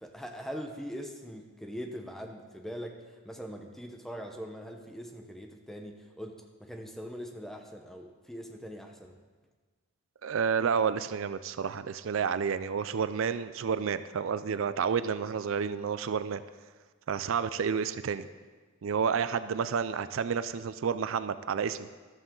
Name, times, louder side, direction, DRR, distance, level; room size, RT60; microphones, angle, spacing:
voice 1, 0.0-9.1, equal, ahead, 3 dB, 0.9 m, -42 dB
voice 2, 10.2-16.4 17.1-18.3 18.8-21.9, right 6 dB, 65° right, 13 dB, 0.4 m, -30 dB
13.0 x 13.0 x 3.8 m, 1.4 s
head